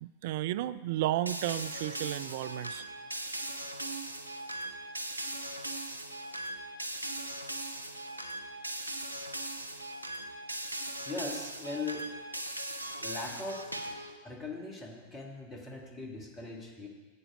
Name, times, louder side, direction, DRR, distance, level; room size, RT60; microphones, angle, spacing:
voice 1, 0.0-2.8, right 14 dB, 50° right, 14 dB, 0.3 m, -33 dB
sound 1, 1.2-14.2, right 1 dB, 90° left, 0.7 m, -39 dB
voice 2, 11.1-12.1 13.0-13.7 14.2-16.9, left 3 dB, 15° left, 1 dB, 1.7 m, -40 dB
10.5 x 8.7 x 5.0 m, 1.3 s
figure-of-eight pair, 90°, 0 cm